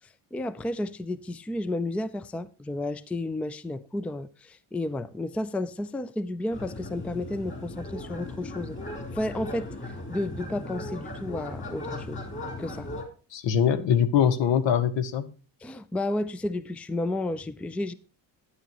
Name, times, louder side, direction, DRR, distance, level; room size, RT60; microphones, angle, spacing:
voice 1, 0.3-8.8 9.1-12.3 12.6-12.9 15.6-17.9, left 1 dB, 5° left, 0.4 m, -32 dB
sound 1, 6.5-13.0, left 2 dB, 25° left, 3.4 m, -37 dB
voice 2, 13.3-15.3, left 8 dB, 75° left, 1.2 m, -23 dB
11.5 x 9.5 x 3.0 m
cardioid pair, 105°, 44 cm